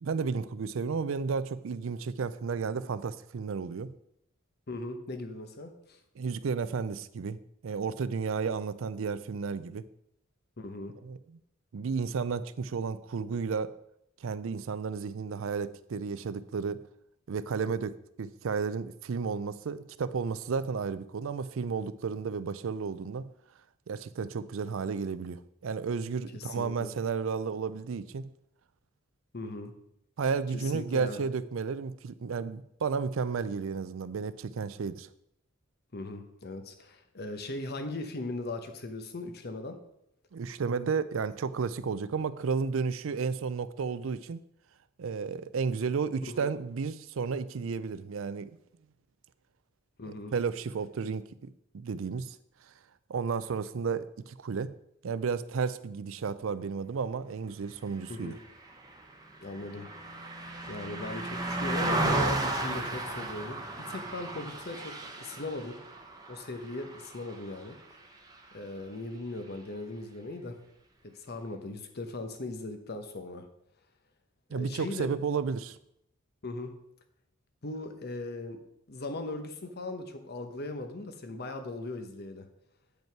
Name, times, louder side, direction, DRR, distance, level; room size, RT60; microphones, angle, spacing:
voice 1, 0.0-3.9 6.2-9.9 11.0-11.2 11.7-13.7 14.2-16.8 17.3-17.9 18.2-23.3 23.9-28.3 30.2-35.1 40.3-44.4 45.0-48.5 50.0-52.4 53.1-54.7 55.0-58.4 74.5-75.8, right 5 dB, 75° right, 15 dB, 0.4 m, -32 dB
voice 2, 4.7-6.0 10.6-10.9 26.3-26.9 29.3-29.7 30.5-31.3 35.9-39.8 46.3-46.5 50.0-50.3 58.1-58.4 59.4-59.9 60.7-64.9 65.2-65.8 66.3-67.8 68.5-70.6 71.1-73.4 74.5-75.2 76.4-76.7 77.6-78.6 78.9-82.5, left 2 dB, 50° left, 7 dB, 1.0 m, -39 dB
Car passing by, 58.4-67.9 68.3-68.5, right 2 dB, 20° right, 0.8 m, -34 dB
9.0 x 5.3 x 4.6 m, 0.76 s
head